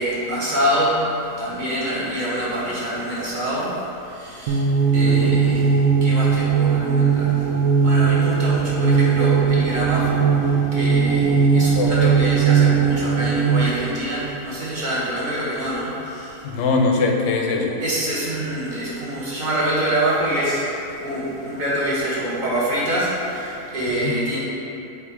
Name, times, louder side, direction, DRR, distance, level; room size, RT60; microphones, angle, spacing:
voice 1, 0.0-16.6 17.8-24.4, right 1 dB, 30° right, -8 dB, 1.5 m, -26 dB
sound 1, 4.5-13.8, right 6 dB, 70° right, 1.0 m, -18 dB
voice 2, 5.0-5.4 11.8-12.2 16.4-17.8 23.9-24.2, left 3 dB, 60° left, 1 dB, 0.9 m, -22 dB
7.3 x 3.1 x 4.7 m, 2.8 s
omnidirectional pair, 1.6 m